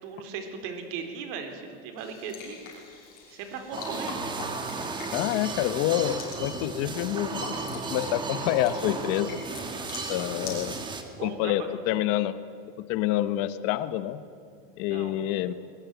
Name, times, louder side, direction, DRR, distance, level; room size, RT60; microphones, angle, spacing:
voice 1, 0.0-2.6 3.3-4.2 11.1-11.7 14.6-15.1, right 6 dB, 55° right, 6 dB, 3.9 m, -38 dB
sound 1, 2.0-10.7, left 5 dB, 30° left, 6.9 m, -44 dB
Industrial ambience, 3.7-11.0, right 3 dB, 15° right, 1.9 m, -34 dB
voice 2, 5.1-9.4 10.1-10.8 11.2-12.4 12.8-14.2 14.8-15.5, left 13 dB, 45° left, 13 dB, 0.9 m, -27 dB
22.0 x 20.5 x 9.1 m, 2.5 s
supercardioid pair, 165°, 30 cm